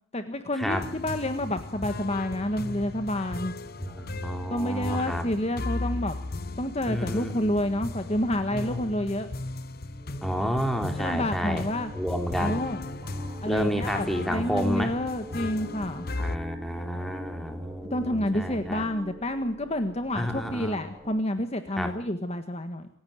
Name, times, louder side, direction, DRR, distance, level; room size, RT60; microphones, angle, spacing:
voice 1, 0.1-3.5 4.5-6.2 6.6-9.3 11.0-11.9 12.4-12.8 13.4-16.1 17.9-22.9, left 1 dB, 30° left, 8 dB, 1.6 m, -29 dB
sound 1, 0.7-16.4, left 2 dB, 50° left, 1.1 m, -36 dB
voice 2, 3.8-5.3 6.9-7.8 8.5-8.8 10.2-11.6 11.9-12.6 13.5-14.9 16.2-18.8 20.2-20.8 21.8-22.0, equal, ahead, 5 dB, 3.5 m, -30 dB
sound 2, 9.6-21.2, equal, 20° right, 3.2 m, -45 dB
27.5 x 16.0 x 9.7 m, 0.64 s
head